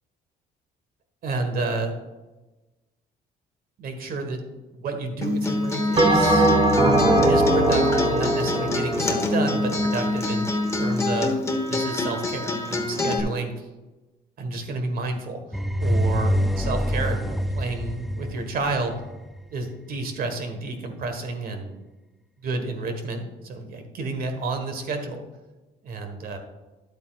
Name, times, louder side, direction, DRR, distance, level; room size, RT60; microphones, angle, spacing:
voice 1, 1.2-1.9 3.8-4.4 4.7-6.5 7.2-10.5 10.8-11.4 11.7-13.6 14.4-15.4 15.8-18.9 19.5-21.8 22.4-25.2 25.8-26.4, right 3 dB, 60° right, 6 dB, 1.6 m, -30 dB
Acoustic guitar, 5.2-13.2, left 2 dB, 15° left, 1.2 m, -26 dB
Bell, 6.0-10.6, right 1 dB, 30° right, 1.3 m, -21 dB
sound 1, 15.5-19.4, equal, ahead, 0.4 m, -25 dB
11.0 x 8.4 x 2.5 m, 1.1 s
cardioid pair, 110°, 17 cm